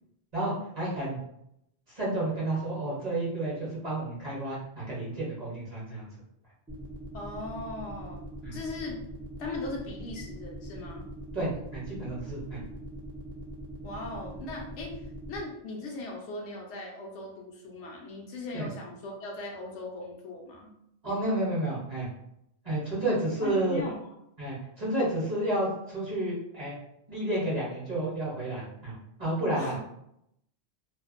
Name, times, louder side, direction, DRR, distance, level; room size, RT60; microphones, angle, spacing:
voice 1, 0.3-1.2 1.9-6.1 8.4-8.6 11.3-12.6 18.5-18.7 21.0-22.1 22.6-23.8 24.4-26.8 27.1-29.7, right 1 dB, 40° right, -7 dB, 0.8 m, -31 dB
sound 1, 6.7-15.4, right 1 dB, 5° right, 0.4 m, -42 dB
voice 2, 7.1-8.2 8.5-9.0 9.4-11.0 13.8-15.0 15.3-20.7 23.4-24.0 29.5-29.8, left 2 dB, 70° left, 0 dB, 0.9 m, -38 dB
2.5 x 2.1 x 2.4 m, 0.76 s
omnidirectional pair, 1.3 m